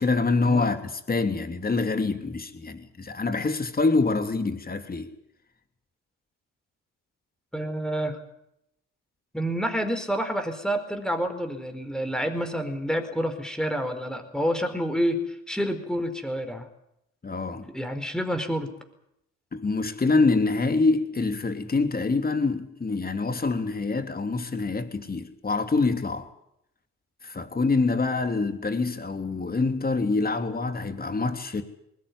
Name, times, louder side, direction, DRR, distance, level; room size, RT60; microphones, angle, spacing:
voice 1, 0.0-5.1 17.2-17.7 19.5-26.3 27.2-31.6, left 3 dB, 30° left, 3.2 m, -25 dB
voice 2, 7.5-8.2 9.3-15.2 15.5-16.7 17.7-18.7, equal, ahead, 4.6 m, -28 dB
20.5 x 17.5 x 9.9 m
supercardioid pair, 70°, 31 cm